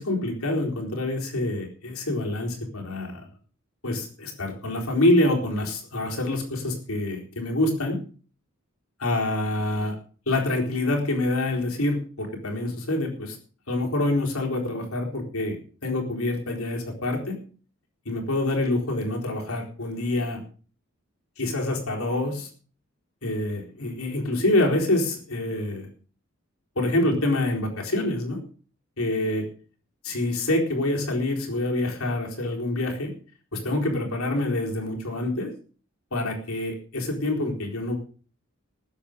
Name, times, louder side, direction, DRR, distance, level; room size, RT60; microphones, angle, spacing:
voice 1, 0.0-3.3 3.8-8.0 9.0-10.0 10.3-13.4 13.7-17.4 18.1-20.4 21.4-22.5 23.2-25.9 26.8-28.4 29.0-29.5 30.0-33.1 33.5-35.5 36.1-38.0, left 1 dB, 90° left, 0 dB, 4.3 m, -26 dB
19.5 x 7.8 x 5.2 m, 0.40 s
head